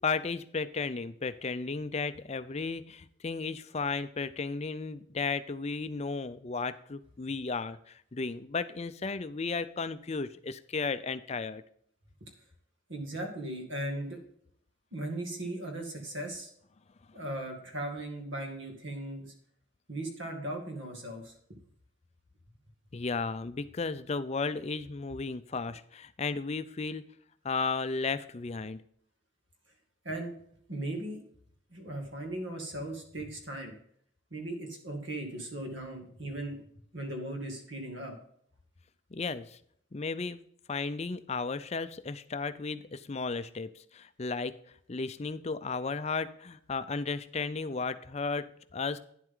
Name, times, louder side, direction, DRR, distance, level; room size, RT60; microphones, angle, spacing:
voice 1, 0.0-11.6 22.9-27.0 27.4-28.8 39.1-39.6 39.9-40.4 40.7-44.5 44.9-49.0, left 4 dB, 30° left, 13 dB, 0.5 m, -34 dB
voice 2, 12.9-14.2 14.9-16.5 17.1-19.3 19.9-21.3 30.0-30.3 30.7-31.2 31.7-33.7 34.3-36.6 36.9-38.2, right 1 dB, 60° right, 3 dB, 2.2 m, -37 dB
10.0 x 7.8 x 3.8 m, 0.65 s
head